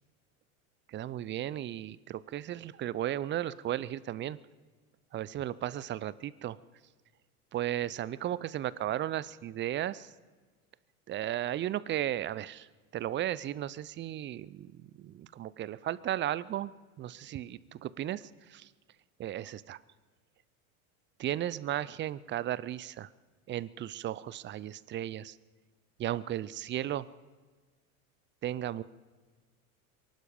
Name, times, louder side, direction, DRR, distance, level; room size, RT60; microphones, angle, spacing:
voice 1, 0.9-4.4 5.1-6.6 7.5-10.1 11.1-12.7 12.9-16.7 17.0-18.7 19.2-19.8 21.2-23.1 23.5-25.4 26.0-27.0 28.4-28.8, right 12 dB, 25° right, 19 dB, 0.5 m, -35 dB
23.5 x 11.5 x 5.3 m, 1.4 s
hypercardioid pair, 85°, 44 cm